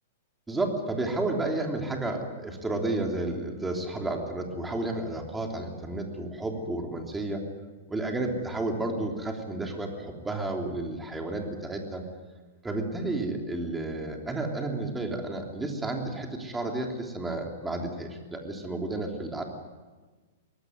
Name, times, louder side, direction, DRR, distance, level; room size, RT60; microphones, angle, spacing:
voice 1, 0.5-7.4 7.9-12.1 12.6-19.4, right 2 dB, 10° right, 2 dB, 3.2 m, -31 dB
23.0 x 18.5 x 9.4 m, 1.3 s
hypercardioid pair, 150°, 0 cm